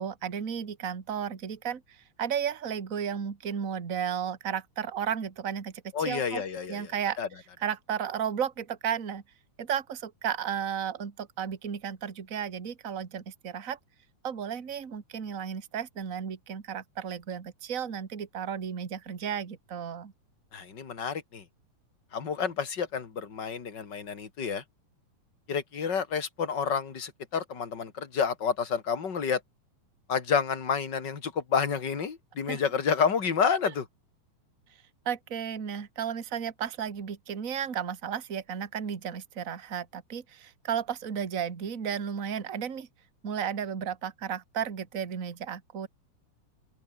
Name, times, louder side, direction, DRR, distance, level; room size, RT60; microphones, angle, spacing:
voice 1, 0.0-6.4 6.7-7.2 7.6-9.2 9.6-13.8 14.2-20.1 32.5-32.6 35.1-42.9 43.2-45.9, right 8 dB, 30° right, 1.8 m, -33 dB
voice 2, 5.9-6.9 7.2-7.3 20.5-21.4 22.1-24.6 25.5-29.4 30.1-33.8, left 6 dB, 35° left, 3.0 m, -29 dB
open air
omnidirectional pair, 3.7 m